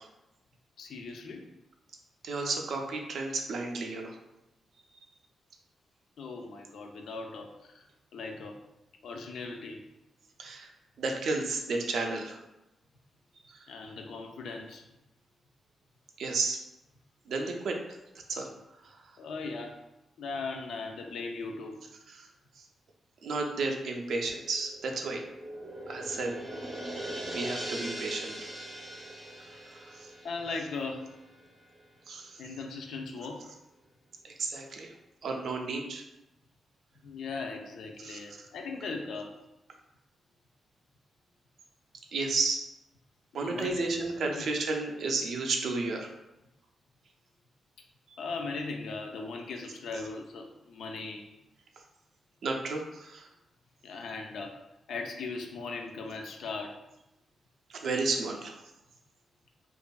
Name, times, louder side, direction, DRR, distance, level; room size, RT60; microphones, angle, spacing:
voice 1, 0.8-1.4 6.2-7.9 8.1-8.6 9.0-9.8 13.7-14.8 19.2-19.8 20.2-21.8 29.5-29.6 30.2-31.2 32.4-33.5 37.0-39.4 43.4-44.5 48.2-51.4 53.8-54.6 54.9-56.8, left 3 dB, 75° left, 3 dB, 0.3 m, -38 dB
voice 2, 2.2-4.1 10.4-10.7 11.0-12.4 13.5-13.6 16.2-16.6 17.3-17.8 18.3-18.5 22.1-22.3 23.2-25.2 25.9-26.3 27.3-28.3 30.0-30.1 32.1-32.4 34.2-34.9 35.2-36.0 38.0-38.2 42.1-42.6 43.3-46.1 48.1-48.2 52.4-53.3 57.7-58.6, right 3 dB, 65° right, 2 dB, 0.4 m, -32 dB
sound 1, 24.5-31.5 31.8-31.9, right 1 dB, 25° right, 0.6 m, -41 dB
2.6 x 2.3 x 2.2 m, 0.92 s
wide cardioid pair, 140°, 0 cm